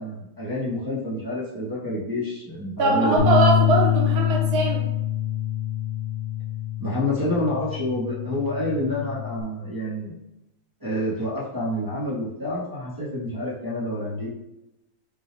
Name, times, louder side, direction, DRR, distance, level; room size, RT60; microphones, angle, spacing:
voice 1, 0.0-3.2 6.8-10.2 10.8-14.3, left 1 dB, 20° right, -8 dB, 0.6 m, -28 dB
voice 2, 2.8-4.9, right 3 dB, 60° right, -1 dB, 1.4 m, -21 dB
Bass guitar, 3.2-9.4, left 11 dB, 55° left, 0.7 m, -25 dB
5.0 x 2.3 x 3.7 m, 0.88 s
omnidirectional pair, 2.0 m